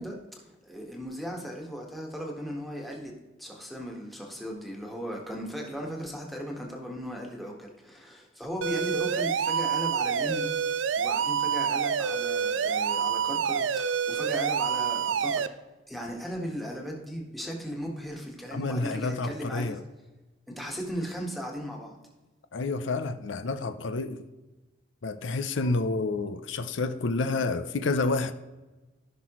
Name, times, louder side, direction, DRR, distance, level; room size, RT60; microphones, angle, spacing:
voice 1, 0.0-3.1 3.4-10.5 11.0-15.6 15.9-19.8 20.5-21.9, equal, ahead, 1.5 m, -37 dB
sound 1, 8.6-15.5, right 7 dB, 90° right, 0.4 m, -27 dB
voice 2, 18.5-19.8 22.5-24.3 25.0-28.3, left 3 dB, 85° left, 0.6 m, -29 dB
15.0 x 6.0 x 3.0 m
head